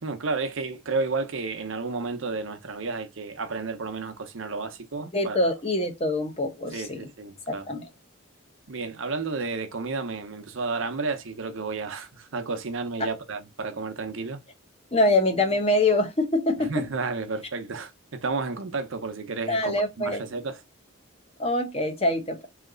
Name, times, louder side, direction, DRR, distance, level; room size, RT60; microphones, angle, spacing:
voice 1, 0.0-5.4 6.7-7.7 8.7-14.4 16.6-20.6, right 4 dB, 65° right, 0.7 m, -32 dB
voice 2, 5.1-7.0 7.5-7.9 14.9-16.8 19.5-20.2 21.4-22.5, left 1 dB, 30° left, 0.8 m, -24 dB
3.2 x 2.8 x 3.7 m
head